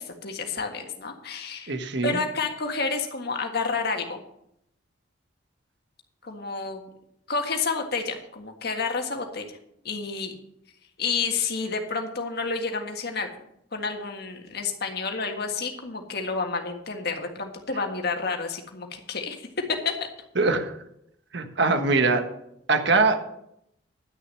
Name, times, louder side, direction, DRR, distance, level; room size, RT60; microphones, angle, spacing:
voice 1, 0.0-1.7 2.0-4.2 6.2-6.8 7.3-9.6 9.9-10.4 11.0-13.3 13.7-19.4 19.7-19.9, left 4 dB, 55° left, 4 dB, 1.7 m, -30 dB
voice 2, 1.7-2.2 20.4-20.7 21.3-22.3 22.7-23.3, right 3 dB, 65° right, 7 dB, 1.3 m, -22 dB
11.0 x 6.6 x 7.6 m, 0.77 s
head